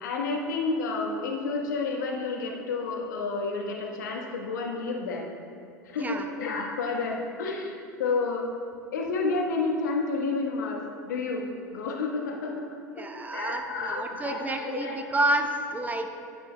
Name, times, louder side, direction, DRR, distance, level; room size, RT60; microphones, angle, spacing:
voice 1, 0.0-5.2 5.8-8.4 8.9-12.6 13.0-15.0, left 3 dB, 70° left, 1 dB, 1.2 m, -30 dB
voice 2, 6.0-6.3 13.0-16.3, right 2 dB, 15° right, 5 dB, 0.8 m, -29 dB
12.0 x 9.8 x 2.2 m, 2.4 s
figure-of-eight pair, 80°, 10 cm